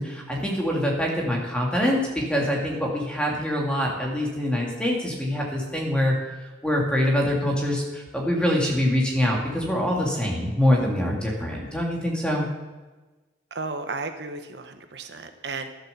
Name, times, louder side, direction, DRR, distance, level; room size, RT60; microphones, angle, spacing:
voice 1, 0.0-6.1 6.4-12.4, left 1 dB, 5° left, -2 dB, 2.4 m, -24 dB
voice 2, 13.5-15.7, right 3 dB, 65° right, 7 dB, 1.1 m, -34 dB
12.0 x 7.5 x 6.9 m, 1.2 s
head